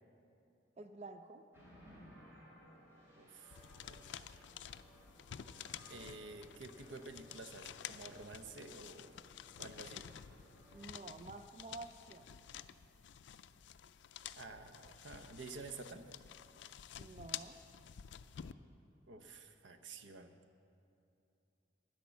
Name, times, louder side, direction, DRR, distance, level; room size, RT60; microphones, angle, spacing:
voice 1, 0.8-1.4 10.7-12.4 17.0-17.6, right 3 dB, 35° right, 8 dB, 0.5 m, -50 dB
sound 1, 1.5-10.9, equal, 15° right, 3.5 m, -61 dB
voice 2, 3.2-3.6 3.9-4.5 5.9-9.2 9.6-10.1 14.4-16.1 19.1-20.3, right 3 dB, 85° right, 8 dB, 0.8 m, -51 dB
sound 2, 3.5-18.5, left 9 dB, 70° left, 0.4 m, -51 dB
10.5 x 10.5 x 7.1 m, 2.7 s
head